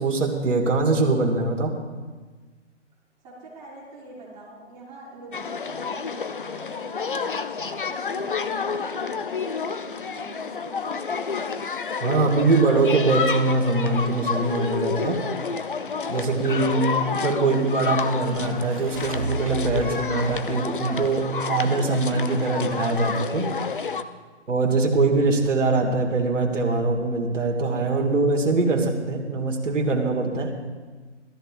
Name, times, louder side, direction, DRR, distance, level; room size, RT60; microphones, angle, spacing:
voice 1, 0.0-1.8 12.0-15.3 16.1-23.5 24.5-30.5, right 3 dB, 90° right, 1 dB, 1.8 m, -23 dB
voice 2, 3.2-7.2 7.5-11.3, right 2 dB, 10° right, -10 dB, 3.3 m, -44 dB
sound 1, 5.3-24.0, left 5 dB, 45° left, 0.4 m, -30 dB
sound 2, 16.9-22.3, right 3 dB, 30° right, 0.5 m, -37 dB
16.5 x 13.5 x 2.4 m, 1.4 s
hypercardioid pair, 170°, 36 cm